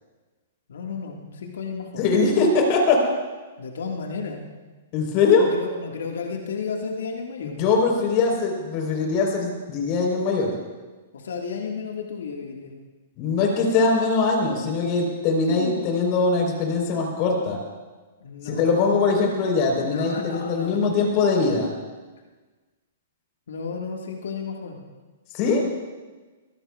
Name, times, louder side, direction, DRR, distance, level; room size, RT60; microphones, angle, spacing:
voice 1, 0.7-2.0 3.6-4.4 5.5-7.6 11.1-12.7 15.5-15.8 18.2-18.6 19.8-20.9 23.5-24.8, left 5 dB, 65° left, 1 dB, 1.8 m, -32 dB
voice 2, 2.0-3.0 4.9-5.5 7.5-10.5 13.2-17.6 18.4-21.7 25.3-25.6, left 4 dB, 40° left, 1 dB, 4.1 m, -21 dB
23.0 x 16.5 x 2.4 m, 1.3 s
figure-of-eight pair, 110°, 0 cm